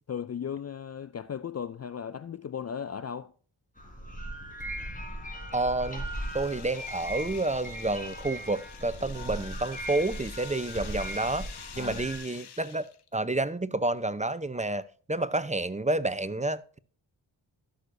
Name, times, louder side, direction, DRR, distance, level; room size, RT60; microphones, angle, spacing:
voice 1, 0.1-3.3 11.7-12.1, left 7 dB, 35° left, 0.4 m, -36 dB
sound 1, 3.8-12.2, equal, 20° left, 4.1 m, -38 dB
sound 2, 5.3-13.1, left 8 dB, 60° left, 0.9 m, -48 dB
voice 2, 5.5-6.0 6.3-11.5 11.8-12.9 13.1-14.8 15.1-16.8, right 2 dB, 15° right, 0.6 m, -29 dB
16.5 x 6.5 x 2.6 m
cardioid pair, 50°, 46 cm